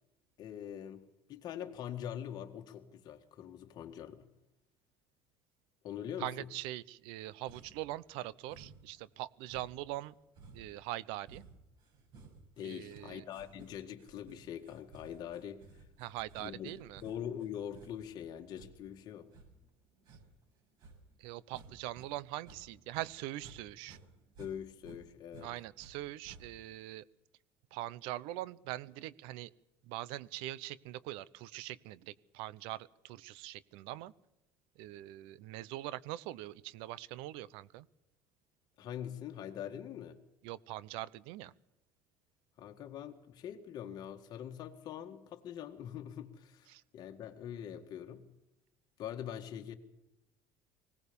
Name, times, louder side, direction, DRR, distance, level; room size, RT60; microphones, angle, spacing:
voice 1, 0.4-1.0 1.3-4.3 5.8-6.3 12.6-15.6 16.4-16.7 17.0-19.3 24.4-25.5 38.8-40.2 42.6-48.3 49.0-49.7, left 9 dB, 50° left, 3 dB, 1.9 m, -43 dB
voice 2, 6.2-10.1 10.5-11.4 12.6-13.2 16.0-17.0 21.2-24.0 25.4-27.0 27.7-29.5 29.8-34.1 34.8-37.9 40.4-41.5 46.7-46.8, right 15 dB, 80° right, 20 dB, 0.8 m, -42 dB
sound 1, 7.5-7.9 8.5-9.0 9.4-22.1 22.4-23.6 23.8-25.9 26.2-26.7, right 4 dB, 50° right, 7.4 m, -57 dB
20.5 x 18.0 x 7.0 m, 0.92 s
cardioid pair, 135°, 9 cm